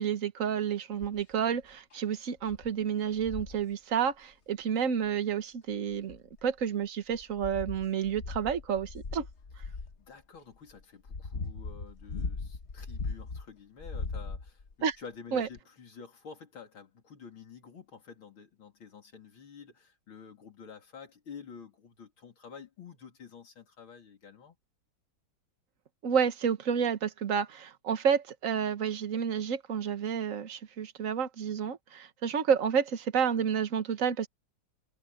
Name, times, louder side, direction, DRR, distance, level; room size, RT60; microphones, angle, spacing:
voice 1, 0.0-9.3 14.8-15.0 15.3-15.5 26.0-34.3, right 7 dB, 45° right, 1.5 m, -30 dB
sound 1, 1.0-1.3 1.9-2.0 2.5-2.7 3.2-3.6 5.0-5.1 5.9-6.6 7.1-10.0 10.7-13.4 13.8-14.7 15.6-15.7, left 4 dB, 40° left, 1.4 m, -39 dB
voice 2, 9.7-24.6, left 6 dB, 85° left, 3.9 m, -49 dB
omnidirectional pair, 2.2 m